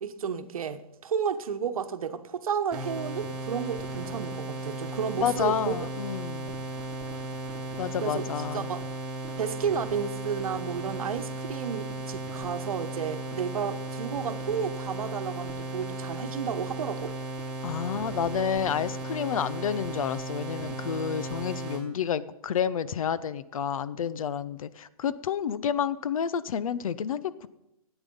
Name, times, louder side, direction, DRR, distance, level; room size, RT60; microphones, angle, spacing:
voice 1, 0.0-5.8 8.0-8.3 8.5-8.8 9.4-17.1, right 7 dB, 70° right, 1.1 m, -32 dB
sound 1, 2.7-21.8, right 2 dB, 5° right, 2.7 m, -36 dB
voice 2, 5.2-6.5 7.8-8.7 17.6-27.5, left 8 dB, 65° left, 0.7 m, -30 dB
13.5 x 9.1 x 5.4 m
hypercardioid pair, 135°, 19 cm